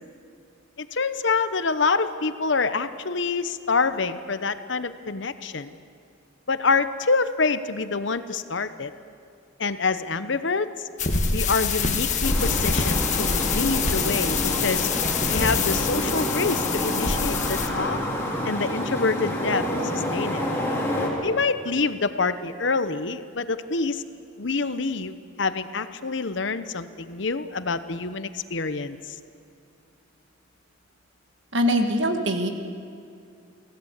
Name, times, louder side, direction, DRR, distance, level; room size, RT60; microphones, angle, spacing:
voice 1, 0.8-5.8 6.5-8.9 9.6-10.9 11.3-14.9 15.3-18.0 18.4-20.4 21.2-24.0 24.4-29.2, left 4 dB, 60° left, 12 dB, 0.9 m, -26 dB
sound 1, 11.0-17.7, left 5 dB, 40° left, 1.5 m, -25 dB
sound 2, 12.2-21.1, left 1 dB, 10° left, 3.8 m, -28 dB
voice 2, 31.5-32.5, equal, 65° right, 5 dB, 1.9 m, -22 dB
24.0 x 16.5 x 8.2 m, 2.5 s
head